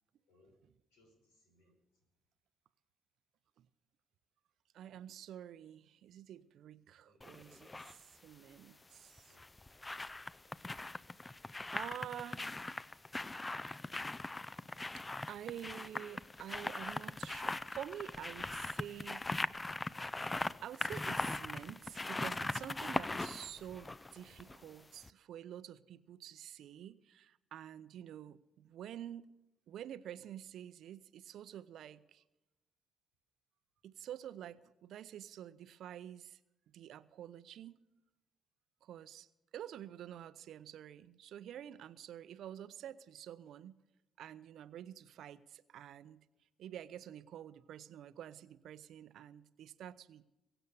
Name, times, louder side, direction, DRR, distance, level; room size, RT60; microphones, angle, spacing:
voice 1, 0.3-0.6 0.9-2.0 7.0-7.3 9.2-9.4 10.4-10.6 34.0-34.1, left 1 dB, 75° left, 1 dB, 5.1 m, -71 dB
voice 2, 4.7-9.3 11.7-12.6 14.9-15.0 15.3-19.2 20.6-29.3 29.7-32.2 33.8-36.4 36.7-37.8 38.8-39.3 39.5-43.8 44.2-46.2 46.6-50.2, right 10 dB, 65° right, 16 dB, 0.6 m, -48 dB
sound 1, 7.2-7.9 9.2-24.7 25.0-25.1, left 2 dB, 20° left, 0.6 m, -40 dB
23.0 x 7.9 x 6.9 m, 0.99 s
hypercardioid pair, 45°, 0 cm